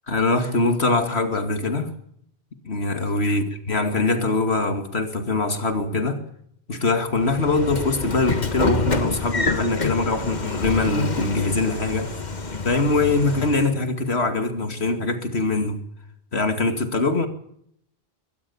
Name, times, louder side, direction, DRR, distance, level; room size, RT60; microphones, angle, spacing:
voice 1, 0.1-1.9 2.6-6.2 6.7-12.1 12.6-15.8 16.3-17.3, left 3 dB, 90° left, 7 dB, 2.7 m, -23 dB
Train / Sliding door, 7.2-13.7, left 3 dB, 45° left, 1.8 m, -27 dB
22.5 x 17.5 x 7.2 m, 0.70 s
omnidirectional pair, 1.1 m